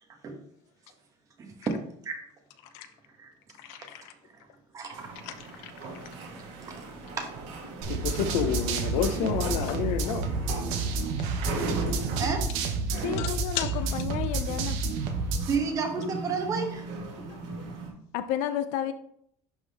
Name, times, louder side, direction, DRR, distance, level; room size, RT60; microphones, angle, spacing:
voice 1, 1.4-1.7 2.0-2.2 3.2-3.3 4.7-5.2 6.7-6.8 7.1-7.3 12.2-12.5 15.5-16.9 17.2-17.3, right 5 dB, 25° right, 3 dB, 1.0 m, -31 dB
voice 2, 3.6-4.1 5.2-5.7 7.9-10.3 12.9-13.8 15.3-15.5 16.0-16.1 17.3-17.8, left 8 dB, 85° left, 10 dB, 0.8 m, -31 dB
sound 1, 4.9-17.9, right 3 dB, 55° right, 2.1 m, -39 dB
sound 2, 7.8-15.6, right 3 dB, 80° right, 1.1 m, -30 dB
voice 3, 13.0-14.8 18.1-18.9, left 10 dB, 55° left, 11 dB, 0.4 m, -31 dB
11.0 x 3.7 x 3.4 m, 0.68 s
cardioid pair, 180°, 14 cm